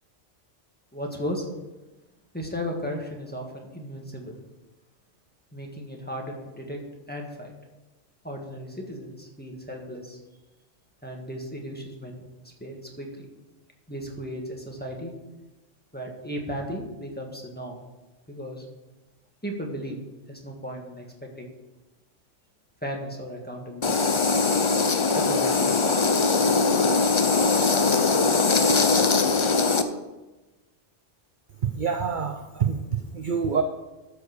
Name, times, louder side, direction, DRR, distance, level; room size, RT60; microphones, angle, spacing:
voice 1, 0.9-1.4 2.3-4.4 5.5-6.8 7.1-7.5 8.2-10.2 11.0-13.3 13.9-15.1 15.9-17.8 18.3-18.6 19.4-20.0 20.3-21.1 21.4-21.5 22.8-24.0 25.1-25.7, equal, 10° left, -1 dB, 1.6 m, -35 dB
sound 1, 23.8-29.8, left 4 dB, 40° left, 0.4 m, -21 dB
voice 2, 31.7-32.8 33.1-33.6, right 6 dB, 50° right, 7 dB, 0.7 m, -26 dB
13.0 x 5.0 x 6.5 m, 1.1 s
omnidirectional pair, 1.3 m